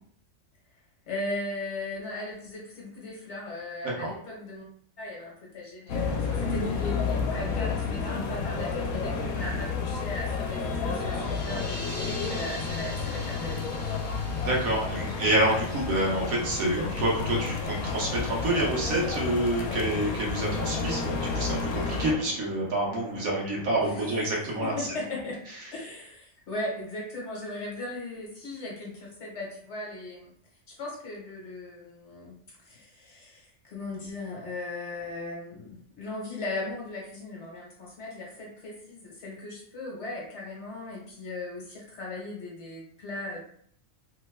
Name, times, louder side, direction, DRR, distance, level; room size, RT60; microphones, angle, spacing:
voice 1, 1.1-4.7 5.0-14.0 23.9-24.4 24.6-25.4 25.7-30.3 30.7-32.4 32.6-43.4, left 2 dB, 55° left, -3 dB, 1.1 m, -38 dB
sound 1, 5.9-22.1, left 5 dB, 80° left, 1.0 m, -31 dB
sound 2, 10.9-16.5, left 1 dB, 20° left, 0.4 m, -43 dB
voice 2, 14.4-24.7, right 1 dB, 75° right, -3 dB, 1.4 m, -27 dB
Thunder, 21.8-24.8, equal, 35° right, 0.8 m, -45 dB
3.2 x 2.1 x 3.1 m, 0.64 s
omnidirectional pair, 1.5 m